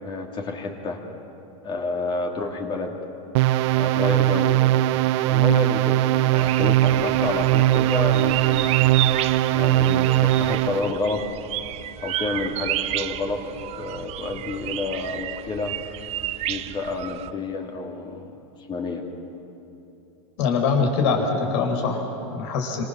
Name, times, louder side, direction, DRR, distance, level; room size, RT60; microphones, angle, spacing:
voice 1, 0.0-1.0 1.6-3.0 3.7-4.6 5.2-9.1 9.5-11.3 12.0-13.4 13.8-15.8 16.4-18.3 18.7-19.0, left 3 dB, 30° left, 2 dB, 3.2 m, -29 dB
sound 1, 3.4-10.9, right 15 dB, 60° right, 0.6 m, -20 dB
sound 2, 6.3-17.3, right 13 dB, 40° right, 0.9 m, -31 dB
voice 2, 20.4-22.8, left 5 dB, 60° left, 3 dB, 5.6 m, -23 dB
28.5 x 26.5 x 7.4 m, 2.9 s
supercardioid pair, 135°, 17 cm